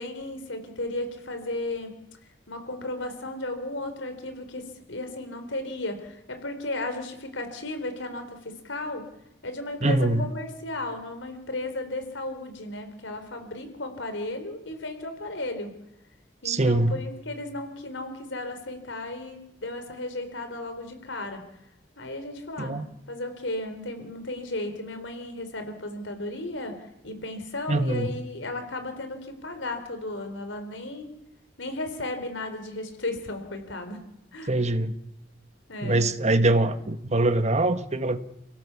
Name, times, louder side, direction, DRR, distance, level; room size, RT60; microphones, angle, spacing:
voice 1, 0.0-1.9 2.5-9.1 9.4-15.7 16.4-21.4 22.0-31.1 31.6-34.0 34.3-34.5 35.7-36.0, left 2 dB, 85° left, 7 dB, 4.0 m, -34 dB
voice 2, 9.8-10.3 16.4-17.0 22.6-22.8 27.7-28.2 34.5-34.9 35.8-38.3, right 2 dB, 35° right, 10 dB, 1.3 m, -23 dB
30.0 x 17.0 x 7.1 m, 0.83 s
head